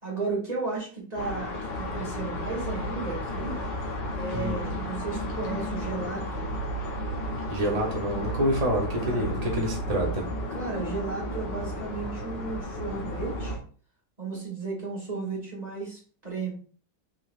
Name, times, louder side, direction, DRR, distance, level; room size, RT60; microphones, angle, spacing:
voice 1, 0.0-3.6 4.1-6.5 9.0-9.2 10.5-13.6 14.2-16.5, right 4 dB, 20° right, -4 dB, 2.1 m, -34 dB
sound 1, 1.2-13.6, left 1 dB, 80° left, 1.7 m, -33 dB
voice 2, 7.5-10.2, right 1 dB, 45° right, -1 dB, 0.5 m, -27 dB
5.7 x 3.9 x 2.4 m, 0.41 s
omnidirectional pair, 1.9 m